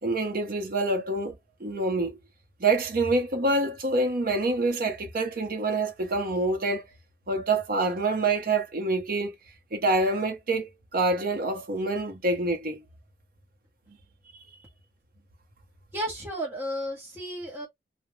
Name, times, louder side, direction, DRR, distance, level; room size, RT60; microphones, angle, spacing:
voice 1, 0.0-2.2 2.6-6.8 7.3-9.3 9.7-12.8 13.9-14.0, right 2 dB, 55° right, 0.7 m, -26 dB
voice 2, 15.9-17.7, equal, 15° right, 0.8 m, -33 dB
2.2 x 2.0 x 3.1 m
head